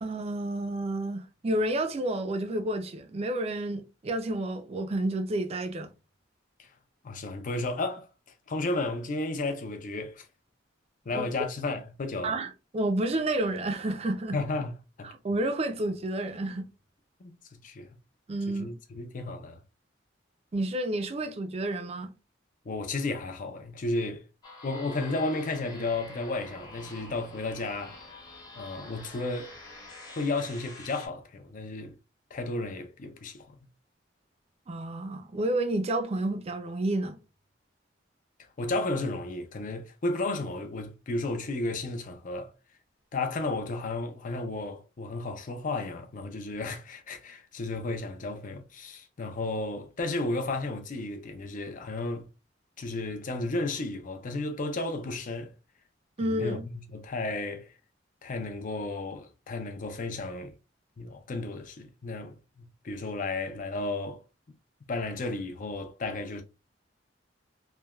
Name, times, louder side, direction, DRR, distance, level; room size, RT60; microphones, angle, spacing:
voice 1, 0.0-5.9 11.1-11.2 12.2-14.4 15.0-16.6 18.3-18.7 20.5-22.1 34.7-37.2 56.2-56.6, right 1 dB, 35° right, 0.4 m, -30 dB
voice 2, 7.0-8.1 8.5-10.3 11.1-12.4 14.3-15.1 17.2-17.3 17.6-17.9 18.5-19.6 22.7-24.2 24.6-28.0 28.6-29.5 30.1-32.0 32.3-33.7 38.6-42.5 43.1-52.3 52.8-55.5 56.2-57.7 58.2-60.5 61.0-64.2 64.9-66.4, left 2 dB, 45° left, 0.5 m, -33 dB
sound 1, 24.4-31.1, left 2 dB, 20° left, 0.9 m, -47 dB
3.1 x 2.2 x 2.2 m
head